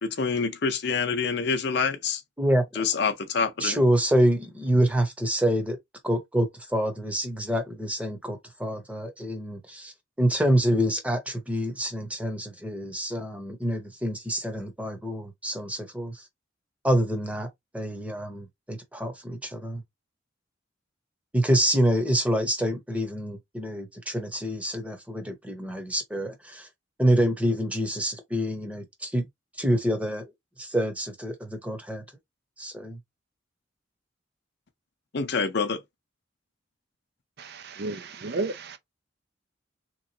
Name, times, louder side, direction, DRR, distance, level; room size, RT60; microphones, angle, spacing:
voice 1, 0.0-2.2 2.7-3.8 35.1-35.8, left 5 dB, 60° left, 0.6 m, -26 dB
voice 2, 3.6-5.8 6.0-9.9 10.2-16.2 16.8-17.5 17.7-19.8 21.3-26.7 27.0-29.3 29.6-30.3 30.6-32.0 32.6-33.0, equal, 5° right, 0.9 m, -26 dB
voice 3, 37.4-38.8, right 3 dB, 55° right, 0.5 m, -33 dB
3.6 x 3.1 x 2.7 m
head